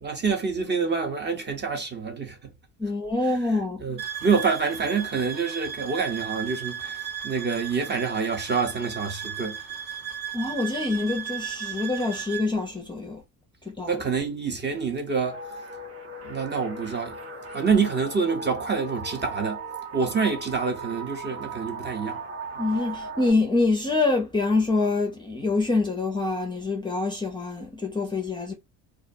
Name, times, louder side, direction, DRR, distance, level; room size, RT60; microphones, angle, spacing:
voice 1, 0.0-2.5 3.8-9.6 13.9-15.4 16.2-17.2 17.5-19.6 19.9-22.2, right 5 dB, 25° right, 0.7 m, -27 dB
voice 2, 2.8-3.8 10.3-13.2 13.7-14.0 22.6-28.5, left 3 dB, 10° left, 0.5 m, -25 dB
sound 1, 4.0-12.5, right 9 dB, 55° right, 1.0 m, -35 dB
sound 2, 15.3-23.3, right 3 dB, 75° right, 1.1 m, -38 dB
2.3 x 2.1 x 2.6 m
cardioid pair, 100°, 39 cm